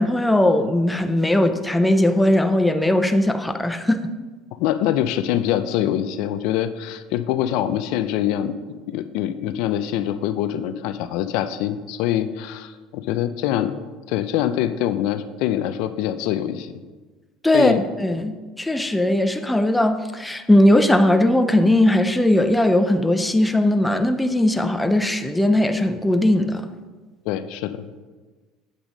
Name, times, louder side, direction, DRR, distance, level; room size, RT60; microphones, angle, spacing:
voice 1, 0.0-4.1 17.4-26.7, left 1 dB, 5° left, 7 dB, 0.5 m, -19 dB
voice 2, 4.6-13.8 14.1-16.7 17.5-17.8 27.3-27.9, left 11 dB, 70° left, 11 dB, 0.5 m, -24 dB
8.2 x 6.1 x 5.2 m, 1.3 s
cardioid pair, 150°, 0 cm